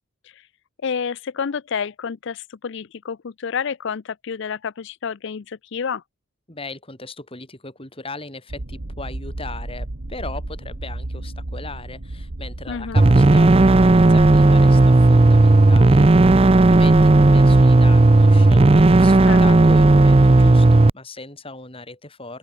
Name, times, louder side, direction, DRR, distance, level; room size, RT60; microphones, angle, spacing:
voice 1, 0.8-6.0 12.7-13.0 19.3-19.4, left 6 dB, 55° left, 0.4 m, -29 dB
voice 2, 6.5-22.4, left 2 dB, 25° left, 4.2 m, -37 dB
sound 1, 8.5-14.4, right 1 dB, 65° right, 1.6 m, -33 dB
sound 2, 13.0-20.9, right 2 dB, 25° right, 0.5 m, -13 dB
open air
head